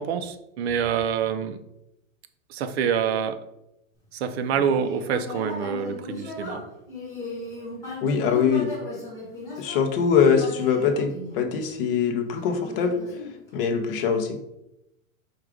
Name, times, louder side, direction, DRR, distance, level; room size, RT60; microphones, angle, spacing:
voice 1, 0.0-1.6 2.5-3.4 4.2-6.6, right 7 dB, 55° right, 9 dB, 0.5 m, -26 dB
Human voice, 4.4-11.8 12.4-13.8, left 2 dB, 5° left, 1.1 m, -37 dB
voice 2, 8.0-8.7 9.6-13.0 13.5-14.4, left 6 dB, 45° left, 5 dB, 0.6 m, -23 dB
4.7 x 2.4 x 4.8 m, 0.85 s
supercardioid pair, 170°, 40 cm